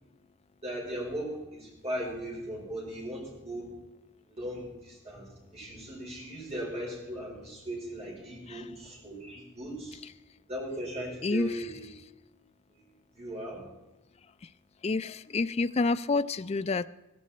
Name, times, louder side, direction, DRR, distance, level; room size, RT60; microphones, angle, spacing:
voice 1, 0.6-3.7 4.0-10.0 10.5-11.8 12.7-13.6, right 1 dB, 30° right, -3 dB, 4.9 m, -38 dB
voice 2, 11.2-11.7 14.8-16.9, left 3 dB, 30° left, 13 dB, 0.4 m, -29 dB
15.5 x 15.0 x 4.3 m, 1.0 s
head